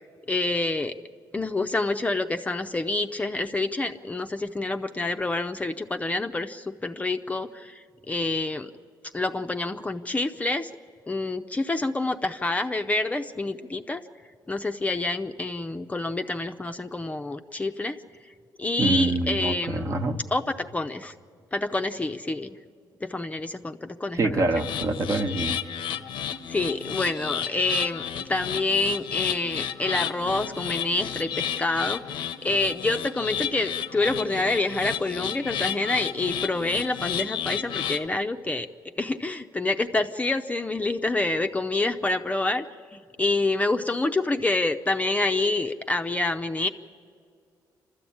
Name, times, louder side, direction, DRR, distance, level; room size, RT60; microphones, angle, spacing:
voice 1, 0.3-0.9 1.3-8.7 9.1-10.7 11.1-14.0 14.5-18.0 18.6-19.9 20.3-21.1 21.5-22.6 23.0-24.4 26.5-38.7 39.0-42.6 42.9-46.7, left 2 dB, 15° left, 7 dB, 0.6 m, -27 dB
voice 2, 18.8-20.2 24.1-25.6, right 2 dB, 40° right, 6 dB, 1.1 m, -25 dB
sound 1, 24.5-38.1, left 9 dB, 90° left, 0.8 m, -32 dB
28.5 x 13.0 x 8.6 m, 2.2 s
cardioid pair, 105°, 8 cm